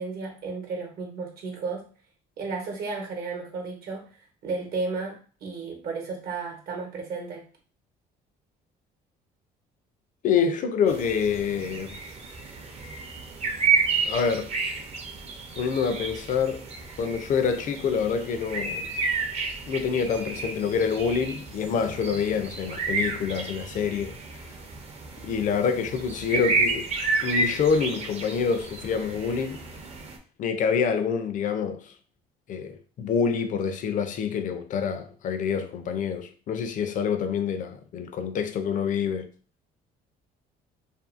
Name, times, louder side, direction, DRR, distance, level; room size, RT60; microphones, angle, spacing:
voice 1, 0.0-1.9 2.4-4.2 4.4-7.4, right 4 dB, 65° right, 0.9 m, -33 dB
voice 2, 10.2-12.0 14.1-14.5 15.6-16.7 17.0-18.9 19.7-24.2 25.2-26.9 27.2-29.7 30.4-31.9 32.5-39.3, left 6 dB, 50° left, 0.4 m, -26 dB
sound 1, 10.9-30.2, right 4 dB, 40° right, 0.6 m, -31 dB
2.6 x 2.6 x 2.5 m
cardioid pair, 110°, 17 cm